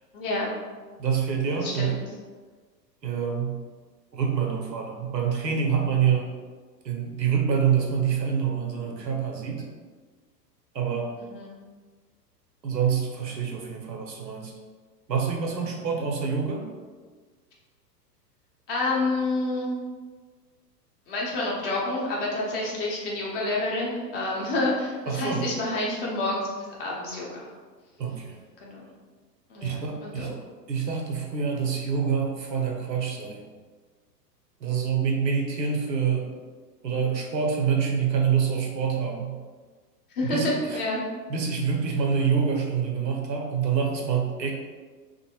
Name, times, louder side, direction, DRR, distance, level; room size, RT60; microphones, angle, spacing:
voice 1, 0.1-0.5 1.6-2.0 11.2-11.6 15.7-15.8 18.7-19.8 21.1-26.5 26.8-27.5 28.6-28.8 29.5-30.3 40.1-41.0, left 2 dB, 35° left, -4 dB, 0.7 m, -28 dB
voice 2, 1.0-1.9 3.0-3.6 4.1-6.3 6.8-9.6 10.7-11.1 12.6-14.5 15.1-16.7 25.1-25.5 28.0-28.4 29.6-30.4 30.7-33.4 34.6-36.3 36.8-39.4 40.2-40.8 41.3-44.5, right 6 dB, 90° right, 0 dB, 0.6 m, -26 dB
2.5 x 2.1 x 2.8 m, 1.4 s
figure-of-eight pair, 100°, 49 cm